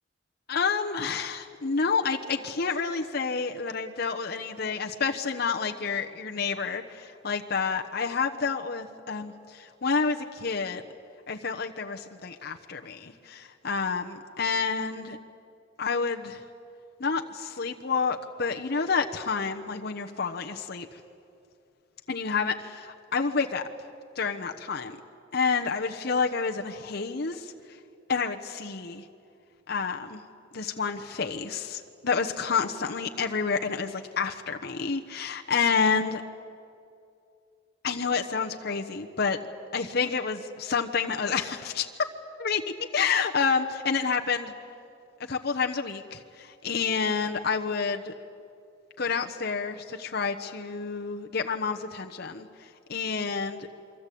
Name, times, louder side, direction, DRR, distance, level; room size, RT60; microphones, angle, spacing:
voice 1, 0.5-10.8 11.3-15.2 15.8-16.4 17.0-21.0 22.1-23.6 24.2-25.0 25.3-27.5 28.1-29.0 29.7-30.2 30.5-36.2 37.8-39.4 39.7-42.1 42.4-42.6 42.9-44.5 45.3-48.1 49.0-52.5 52.9-53.7, left 5 dB, 55° left, 3 dB, 1.1 m, -29 dB
27.0 x 24.0 x 8.5 m, 2.5 s
head